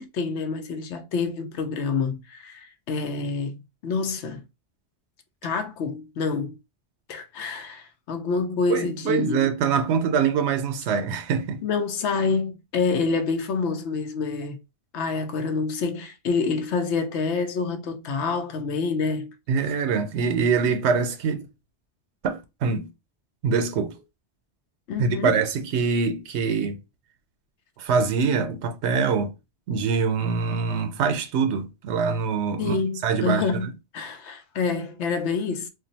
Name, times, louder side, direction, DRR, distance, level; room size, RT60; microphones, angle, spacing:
voice 1, 0.0-4.4 5.4-6.6 7.1-9.5 11.6-14.6 14.9-19.3 24.9-25.4 32.6-33.7 33.9-35.7, left 4 dB, 90° left, 0.9 m, -27 dB
voice 2, 8.7-11.6 19.5-21.4 22.2-22.9 23.4-24.0 25.0-26.8 27.8-29.3 29.7-32.8 33.0-33.7, right 5 dB, 90° right, 0.9 m, -24 dB
2.5 x 2.1 x 3.9 m
omnidirectional pair, 1.1 m